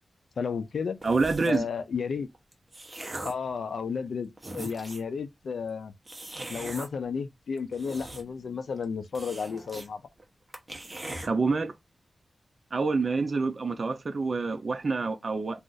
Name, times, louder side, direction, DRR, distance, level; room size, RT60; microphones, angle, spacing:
voice 1, 0.4-1.0 1.5-2.3 3.2-5.9 6.5-10.0, left 5 dB, 85° left, 0.4 m, -32 dB
sound 1, 1.0-1.7 2.3-3.5 4.1-4.2 4.4-5.1 6.1-6.9 7.6-8.5 8.7-8.8 9.1-9.9 10.2-10.3 10.5-11.3, right 1 dB, 25° right, 0.8 m, -40 dB
voice 2, 1.0-1.6 11.2-11.7 12.7-15.6, right 4 dB, 50° right, 0.4 m, -27 dB
2.4 x 2.4 x 3.8 m
wide cardioid pair, 85°, 0 cm